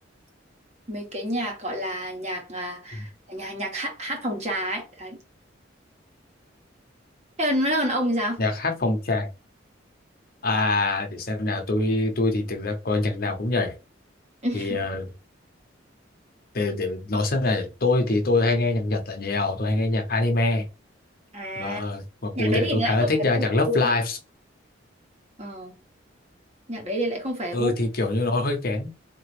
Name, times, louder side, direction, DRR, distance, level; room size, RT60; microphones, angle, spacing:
voice 1, 0.9-5.2 7.4-8.4 14.4-14.9 21.3-21.8 22.3-23.9 25.4-25.7 26.7-27.7, equal, 35° right, 1.4 m, -28 dB
voice 2, 8.4-9.3 10.4-13.7 14.5-15.1 16.5-20.6 21.6-24.2 27.5-28.9, left 2 dB, 50° left, 0.9 m, -24 dB
4.2 x 2.9 x 3.1 m
head